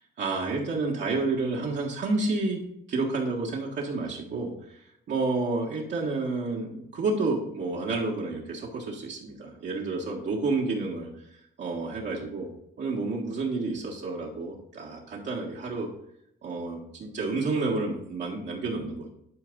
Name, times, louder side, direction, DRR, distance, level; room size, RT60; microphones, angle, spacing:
voice 1, 0.2-2.6 2.9-12.5 12.8-15.9 16.4-19.1, right 3 dB, 60° right, -4 dB, 1.7 m, -30 dB
11.5 x 4.2 x 3.9 m, 0.76 s
cardioid pair, 90°, 20 cm